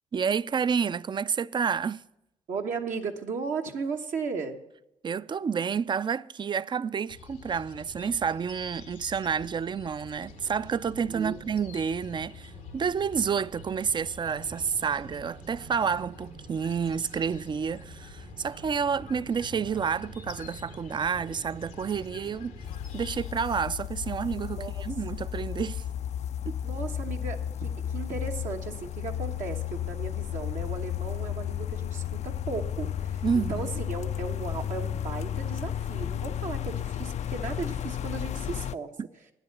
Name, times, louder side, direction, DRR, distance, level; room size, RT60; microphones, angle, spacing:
voice 1, 0.1-2.0 5.0-22.6 22.9-25.8 26.5-26.6 33.2-33.7, right 6 dB, 35° right, 0.4 m, -29 dB
voice 2, 2.5-4.6 11.1-11.4 24.5-24.9 26.6-38.9, right 4 dB, 75° right, 1.2 m, -36 dB
sound 1, 7.1-23.3, left 6 dB, 90° left, 1.0 m, -47 dB
sound 2, 10.3-23.1, right 6 dB, 55° right, 0.9 m, -50 dB
sound 3, 22.6-38.7, left 10 dB, 60° left, 0.4 m, -33 dB
9.7 x 8.0 x 7.1 m
supercardioid pair, 65°, 13 cm